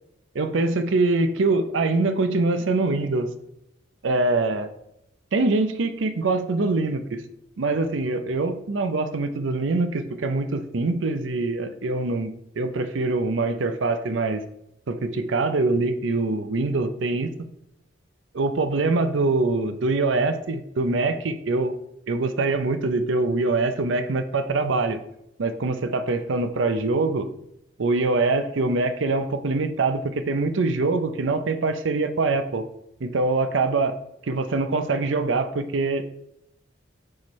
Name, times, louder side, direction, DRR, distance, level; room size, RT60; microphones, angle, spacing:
voice 1, 0.3-3.3 4.0-4.7 5.3-7.2 7.6-14.4 14.9-17.5 18.3-21.7 22.1-25.0 25.4-27.3 27.8-32.6 33.0-33.9 34.2-36.1, right 3 dB, 70° right, 9 dB, 0.6 m, -24 dB
7.4 x 4.4 x 3.1 m, 0.79 s
head